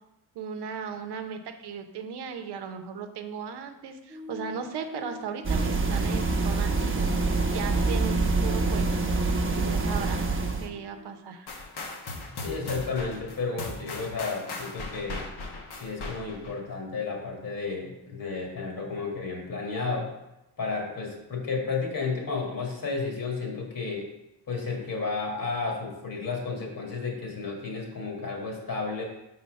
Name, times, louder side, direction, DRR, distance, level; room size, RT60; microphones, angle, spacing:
voice 1, 0.3-9.0 9.6-10.3 10.6-11.5, right 6 dB, 85° right, 6 dB, 0.8 m, -37 dB
sound 1, 4.1-11.2, left 2 dB, 10° right, 0.3 m, -43 dB
sound 2, 5.4-10.7, right 3 dB, 30° right, 0.9 m, -26 dB
sound 3, 11.5-16.6, left 3 dB, 75° left, 1.1 m, -38 dB
voice 2, 12.4-15.2 15.8-20.1 20.6-24.1 24.5-29.0, left 4 dB, 60° left, 0 dB, 1.9 m, -32 dB
5.5 x 4.2 x 5.2 m, 0.93 s
cardioid pair, 85°, 39 cm